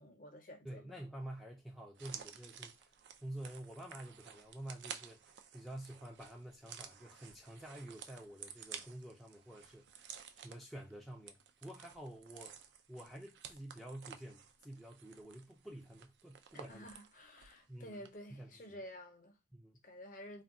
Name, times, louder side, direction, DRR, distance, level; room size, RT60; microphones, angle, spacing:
voice 1, 0.0-1.0 16.5-19.4 19.8-20.4, equal, 45° left, 0.7 m, -51 dB
voice 2, 0.6-2.9 3.2-12.6 12.9-16.9 17.7-18.8 19.5-19.8, right 1 dB, ahead, 0.4 m, -49 dB
sound 1, 1.9-17.6 17.9-18.1, right 8 dB, 70° right, 0.4 m, -53 dB
2.3 x 2.2 x 3.7 m
head